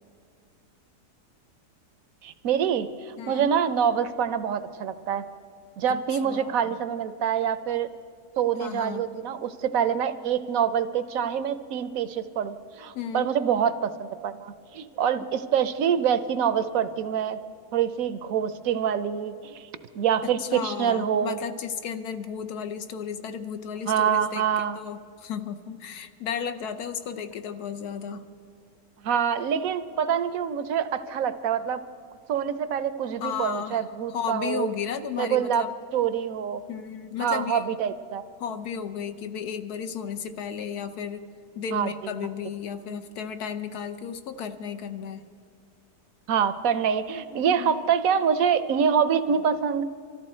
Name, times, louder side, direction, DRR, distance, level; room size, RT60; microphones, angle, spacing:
voice 1, 2.2-5.2 5.8-7.9 8.4-17.4 17.7-19.7 19.9-21.4 23.9-24.8 29.0-31.8 32.3-34.7 35.2-35.6 35.9-36.6 37.2-38.2 41.7-41.9 46.3-49.8, right 8 dB, 70° right, 12 dB, 1.0 m, -25 dB
voice 2, 3.2-3.5 6.2-6.7 8.6-9.1 12.9-13.3 20.4-28.3 33.2-33.8 34.1-35.7 36.7-37.6 38.4-41.3 41.6-45.2 47.6-47.8, left 7 dB, 75° left, 8 dB, 1.2 m, -34 dB
24.0 x 13.5 x 4.3 m, 2.3 s
omnidirectional pair, 1.7 m